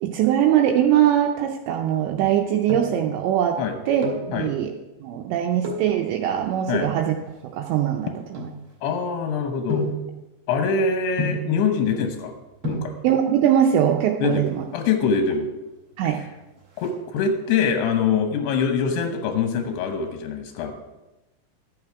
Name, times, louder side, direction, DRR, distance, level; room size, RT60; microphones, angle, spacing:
voice 1, 0.0-3.6 3.9-4.7 5.0-7.1 7.5-8.5 13.0-14.6 16.0-16.2, right 10 dB, 85° right, 2 dB, 2.5 m, -21 dB
sound 1, 2.4-3.1 3.8-4.3 5.6-6.0 6.7-9.1 9.7-10.1 11.2-11.6 12.3-12.4 12.6-13.0 14.1-14.6 14.9-15.0 15.3-15.4 15.8-16.2 16.5-17.5 18.0-18.4 18.7-19.9 20.2-20.3, left 1 dB, 50° right, 1.6 m, -31 dB
voice 2, 8.8-9.9 10.5-12.3 12.7-12.9 14.2-14.4 14.7-15.5 16.1-16.2 16.8-20.7, left 5 dB, 80° left, 5 dB, 2.4 m, -24 dB
13.5 x 7.1 x 4.6 m, 1.0 s
omnidirectional pair, 5.8 m